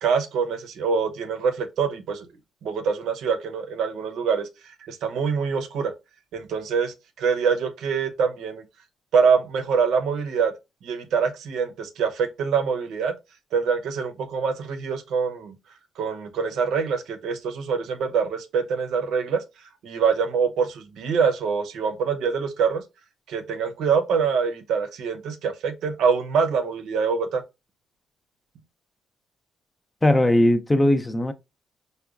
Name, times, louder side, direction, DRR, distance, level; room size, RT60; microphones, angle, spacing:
voice 1, 0.0-2.3 2.6-5.9 6.3-8.6 9.1-10.5 10.8-13.1 13.5-15.6 16.0-19.4 19.8-22.8 23.3-27.4, right 6 dB, 80° right, 0.6 m, -25 dB
voice 2, 30.0-31.3, left 1 dB, 15° left, 0.5 m, -19 dB
4.8 x 2.2 x 2.3 m
cardioid pair, 90°, 0 cm